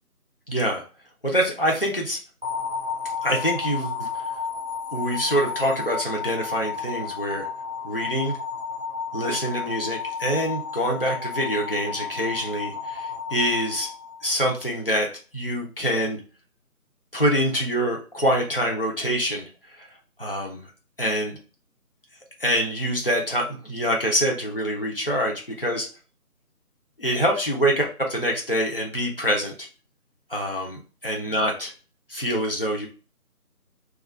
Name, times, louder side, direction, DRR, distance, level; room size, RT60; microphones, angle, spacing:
voice 1, 0.5-0.8 1.2-2.2 3.2-4.1 4.9-7.5 7.8-8.4 9.1-13.9 14.2-15.1 15.3-16.2 17.1-19.4 19.8-19.9 20.2-20.6 21.0-21.4 22.4-25.9 27.0-29.7 30.3-31.7 32.1-32.9, equal, 40° left, -1 dB, 0.6 m, -25 dB
sound 1, 2.4-14.6, left 5 dB, 35° right, 0.7 m, -32 dB
3.3 x 2.4 x 3.2 m, 0.37 s
figure-of-eight pair, 175°, 45 cm